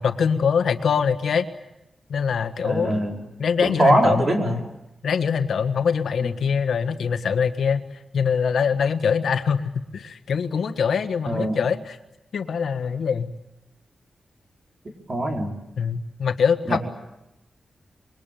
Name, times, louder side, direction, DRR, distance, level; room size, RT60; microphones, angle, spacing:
voice 1, 0.0-1.5 2.1-3.0 3.4-4.6 5.0-7.8 8.1-12.0 12.3-13.3 15.8-16.8, left 6 dB, 80° left, 9 dB, 1.5 m, -23 dB
voice 2, 2.6-3.1 3.6-4.6 6.2-6.3 11.3-11.6 15.1-15.5 16.7-16.8, right 1 dB, 35° right, 1 dB, 4.8 m, -22 dB
26.0 x 23.0 x 9.2 m, 0.91 s
wide cardioid pair, 135°, 0 cm